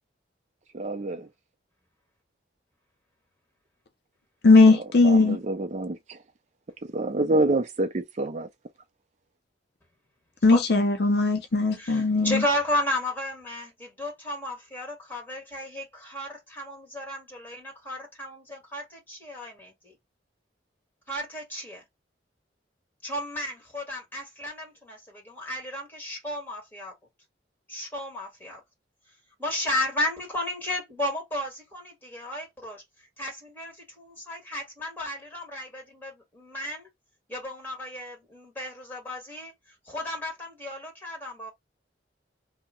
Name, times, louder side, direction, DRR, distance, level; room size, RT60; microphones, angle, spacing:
voice 1, 0.7-1.3 4.7-4.8 5.0-6.2 6.9-8.5, right 2 dB, 40° right, 0.5 m, -27 dB
voice 2, 4.4-5.4 10.4-12.4, left 3 dB, 60° left, 0.6 m, -19 dB
voice 3, 11.8-19.9 21.1-21.8 23.0-26.9 27.7-28.6 29.4-32.8 33.2-36.9 37.3-39.5 39.9-41.5, left 1 dB, 10° left, 1.7 m, -33 dB
2.8 x 2.1 x 3.7 m
head